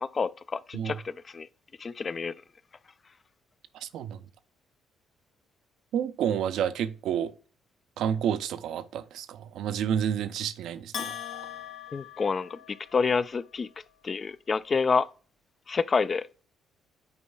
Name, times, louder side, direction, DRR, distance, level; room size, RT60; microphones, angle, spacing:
voice 1, 0.0-1.5 1.8-2.3 11.9-13.7 14.0-15.1 15.7-16.3, left 5 dB, 40° left, 0.3 m, -28 dB
voice 2, 3.7-4.2 5.9-7.3 8.0-11.1, right 9 dB, 70° right, 0.4 m, -30 dB
Bell, 10.9-13.1, left 8 dB, 70° left, 1.0 m, -39 dB
9.6 x 4.4 x 2.2 m
supercardioid pair, 55°, 0 cm